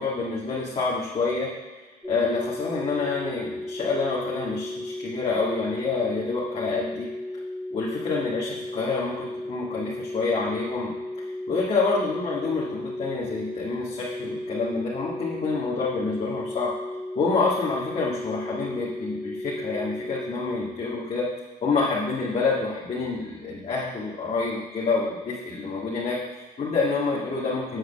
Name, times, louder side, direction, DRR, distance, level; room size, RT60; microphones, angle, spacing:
voice 1, 0.0-1.5 2.0-7.1 7.7-10.9 11.5-16.7 17.2-21.3 21.6-27.8, left 4 dB, 40° left, -6 dB, 1.8 m, -27 dB
sound 1, 2.0-20.7, left 1 dB, ahead, 1.8 m, -35 dB
7.9 x 4.8 x 6.8 m, 1.3 s
cardioid pair, 110°, 17 cm